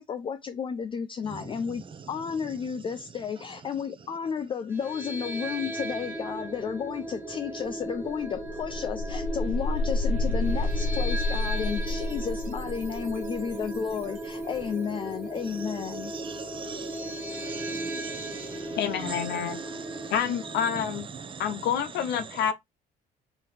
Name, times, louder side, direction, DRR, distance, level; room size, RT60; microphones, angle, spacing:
voice 1, 0.0-16.1, left 6 dB, 30° left, 0.3 m, -32 dB
sound 1, 4.7-20.8, right 1 dB, 15° right, 1.5 m, -37 dB
sound 2, 7.6-7.7 8.1-14.8, left 2 dB, 55° right, 1.0 m, -31 dB
voice 2, 16.1-18.8 19.0-19.1 19.5-20.1 21.2-21.4, right 5 dB, 30° right, 0.7 m, -40 dB
voice 3, 18.8-19.6 20.1-21.1 21.4-22.5, left 8 dB, 80° left, 0.7 m, -28 dB
3.2 x 2.9 x 4.0 m
cardioid pair, 110°, 17 cm